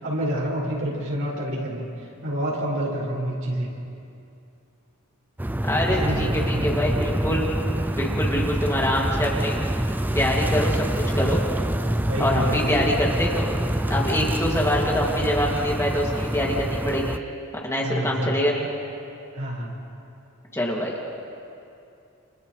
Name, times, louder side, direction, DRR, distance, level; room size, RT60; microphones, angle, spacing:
voice 1, 0.0-3.7 5.9-6.8 12.0-12.9 17.8-18.6 19.3-19.7, right 1 dB, 75° right, -5 dB, 6.5 m, -28 dB
sound 1, 5.4-17.2, right 1 dB, 10° right, 0.4 m, -26 dB
voice 2, 5.6-7.4 7.9-9.6 10.1-10.9 11.1-11.4 12.2-13.6 13.9-17.2 17.6-18.7 20.5-20.9, left 1 dB, 15° left, -3 dB, 2.5 m, -25 dB
29.5 x 29.5 x 3.3 m, 2.6 s
head